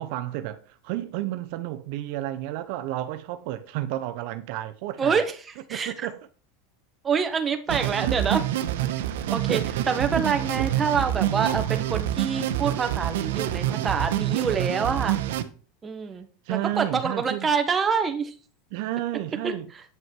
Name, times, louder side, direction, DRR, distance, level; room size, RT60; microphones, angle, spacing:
voice 1, 0.0-5.2 5.7-6.2 8.0-8.2 8.8-10.3 10.6-10.7 13.3-13.9 16.4-17.5 18.7-19.7, right 14 dB, 60° right, 0.8 m, -32 dB
voice 2, 5.0-5.3 5.7-5.9 7.0-8.4 9.3-9.6 9.9-15.2 15.8-18.3 19.4-19.5, right 6 dB, 20° right, 1.4 m, -26 dB
sound 1, 7.7-15.4, right 12 dB, 85° right, 1.0 m, -27 dB
9.1 x 6.4 x 4.6 m
supercardioid pair, 140°, 0 cm